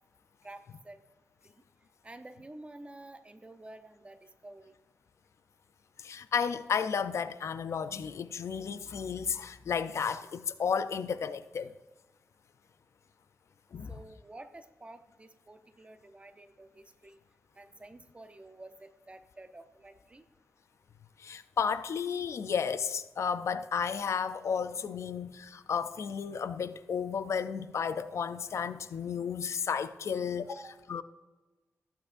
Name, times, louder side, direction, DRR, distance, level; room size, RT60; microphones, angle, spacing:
voice 1, 0.4-1.0 2.0-4.8 13.9-17.2 17.5-20.2 30.5-30.8, right 2 dB, 25° right, 0.6 m, -50 dB
voice 2, 6.0-11.7 13.7-13.9 21.2-30.5 30.9-31.0, left 6 dB, 65° left, 0.4 m, -33 dB
14.0 x 8.7 x 2.6 m
wide cardioid pair, 120°, 5 cm